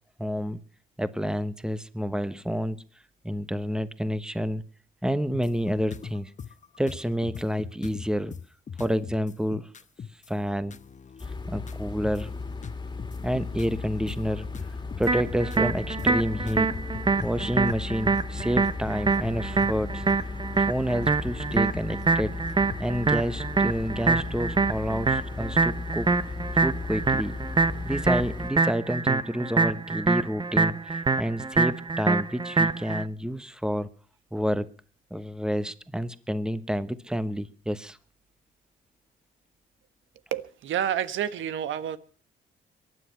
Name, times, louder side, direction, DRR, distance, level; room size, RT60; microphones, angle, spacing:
voice 1, 0.2-0.6 1.0-2.8 3.2-4.6 5.0-6.3 6.8-8.3 8.8-9.8 10.3-10.8 11.5-12.3 13.2-14.5 15.0-16.7 17.2-20.0 20.6-22.4 22.8-26.1 26.5-27.4 27.8-33.9 34.3-34.7 35.1-38.0, equal, 5° right, 1.1 m, -29 dB
sound 1, 5.3-10.3 10.6-11.3 11.5-20.1 21.0-22.8, left 7 dB, 40° left, 1.0 m, -41 dB
sound 2, 11.2-28.5, left 3 dB, 20° left, 2.3 m, -36 dB
sound 3, 15.1-33.0, right 4 dB, 25° right, 0.9 m, -25 dB
voice 2, 40.3-42.0, right 9 dB, 75° right, 1.4 m, -29 dB
23.0 x 10.0 x 5.8 m
cardioid pair, 90°, 20 cm